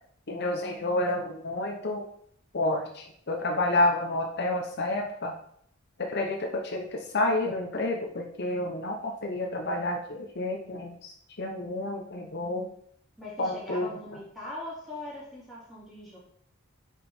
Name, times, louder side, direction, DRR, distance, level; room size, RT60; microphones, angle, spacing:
voice 1, 0.3-2.0 2.5-5.3 6.0-12.7 13.4-13.9, left 2 dB, 55° left, 1 dB, 0.8 m, -29 dB
voice 2, 13.2-16.2, left 1 dB, ahead, -7 dB, 2.9 m, -41 dB
6.4 x 5.3 x 4.4 m, 0.67 s
head